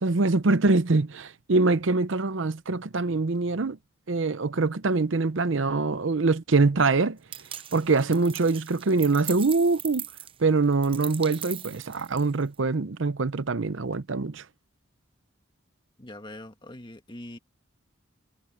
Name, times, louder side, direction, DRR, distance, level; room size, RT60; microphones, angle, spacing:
voice 1, 0.0-3.8 4.1-7.2 7.7-10.0 10.4-14.4, right 3 dB, 70° right, 0.7 m, -24 dB
sound 1, 7.3-12.5, right 10 dB, 25° right, 0.6 m, -40 dB
voice 2, 16.0-17.4, left 1 dB, 25° left, 1.9 m, -42 dB
head